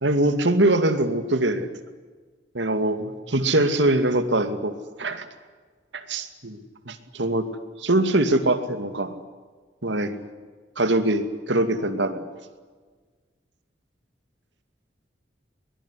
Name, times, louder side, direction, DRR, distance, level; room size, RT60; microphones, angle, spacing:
voice 1, 0.0-1.7 2.5-5.3 5.9-6.6 6.9-7.5 7.8-9.1 9.8-10.2 10.8-12.2, right 1 dB, 85° right, 9 dB, 2.4 m, -23 dB
22.0 x 21.5 x 10.0 m, 1.5 s
head